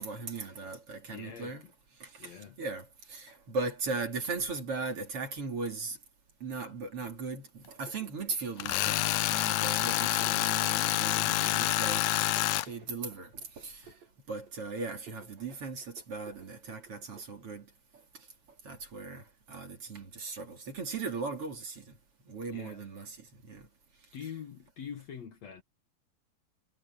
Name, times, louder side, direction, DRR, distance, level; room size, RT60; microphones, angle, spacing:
voice 1, 0.0-1.6 2.0-6.0 6.4-9.0 9.3-13.9 14.3-17.7 18.1-18.3 18.6-22.0 22.3-23.7, right 4 dB, 40° right, 3.6 m, -38 dB
voice 2, 1.1-1.5 2.2-2.6 22.5-22.8 24.1-25.6, left 8 dB, 55° left, 2.4 m, -44 dB
sound 1, 7.9-17.3, right 7 dB, 80° right, 9.7 m, -56 dB
Tools, 8.6-12.7, left 16 dB, 75° left, 1.9 m, -28 dB
omnidirectional pair, 4.1 m